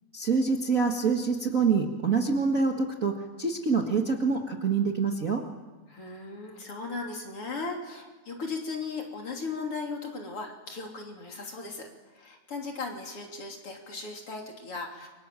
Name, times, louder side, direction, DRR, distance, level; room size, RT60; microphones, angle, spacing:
voice 1, 0.1-5.4, right 5 dB, 35° right, 1 dB, 1.7 m, -26 dB
voice 2, 5.9-11.9 12.1-15.1, left 4 dB, 50° left, 1 dB, 3.9 m, -37 dB
29.5 x 24.5 x 7.6 m, 1.3 s
omnidirectional pair, 3.4 m